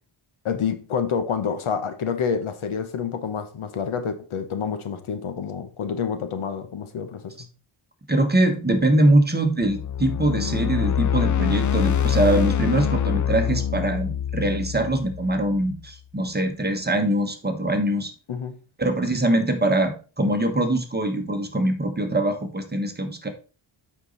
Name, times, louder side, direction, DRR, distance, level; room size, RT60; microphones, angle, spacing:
voice 1, 0.4-7.5 18.3-18.6, left 6 dB, 75° left, 1.2 m, -28 dB
voice 2, 8.1-18.1 18.8-19.9 20.2-23.3, right 1 dB, 20° right, 1.3 m, -22 dB
sound 1, 9.6-15.8, left 9 dB, 40° left, 0.5 m, -25 dB
8.2 x 5.4 x 4.0 m
wide cardioid pair, 115°, 50 cm